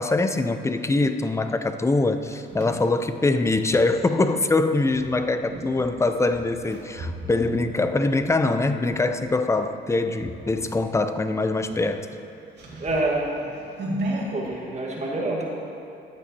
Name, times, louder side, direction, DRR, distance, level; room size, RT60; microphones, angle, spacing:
voice 1, 0.0-12.1, left 2 dB, 15° left, 9 dB, 0.5 m, -23 dB
sound 1, 1.9-3.8 4.8-9.0 9.5-9.8 10.1-10.8 11.1-11.2 11.6-14.5, right 1 dB, 60° right, 2.3 m, -36 dB
voice 2, 12.8-13.2 14.3-15.5, right 2 dB, 35° right, -3 dB, 1.5 m, -26 dB
14.5 x 8.5 x 2.8 m, 2.7 s
cardioid pair, 90°, 20 cm